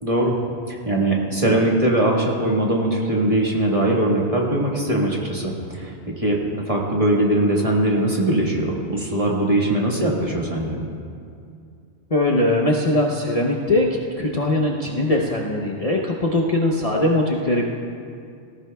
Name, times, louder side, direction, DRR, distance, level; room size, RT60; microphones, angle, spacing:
voice 1, 0.0-0.4 0.7-10.8, right 1 dB, 30° right, -2 dB, 1.5 m, -21 dB
voice 2, 12.1-13.9 14.2-17.6, left 1 dB, 35° left, -2 dB, 0.8 m, -21 dB
18.5 x 14.0 x 2.3 m, 2.4 s
omnidirectional pair, 1.2 m